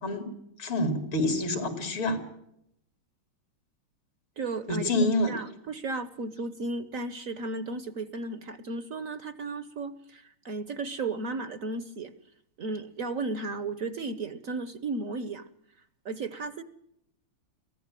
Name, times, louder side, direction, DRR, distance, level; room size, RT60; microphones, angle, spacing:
voice 1, 0.6-2.2 4.7-5.3, left 1 dB, 75° left, 7 dB, 3.6 m, -27 dB
voice 2, 4.4-4.9 5.3-12.1 12.6-15.5 16.0-16.6, right 3 dB, 55° right, 14 dB, 1.0 m, -34 dB
23.5 x 15.5 x 7.5 m, 0.77 s
omnidirectional pair, 2.3 m